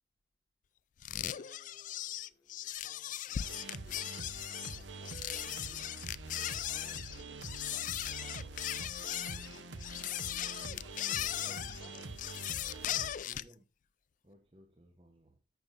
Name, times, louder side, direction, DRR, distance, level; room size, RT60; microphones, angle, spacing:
sound 1, 1.0-13.5, left 12 dB, 45° left, 0.3 m, -38 dB
voice 1, 1.1-5.3 5.5-6.0 6.2-9.8 10.3-13.5, left 1 dB, 20° left, 1.7 m, -63 dB
sound 2, 3.4-13.1, right 3 dB, 80° right, 1.1 m, -45 dB
voice 2, 11.2-12.0 13.2-13.6 14.2-15.4, equal, 30° right, 1.0 m, -58 dB
12.0 x 7.1 x 2.6 m
head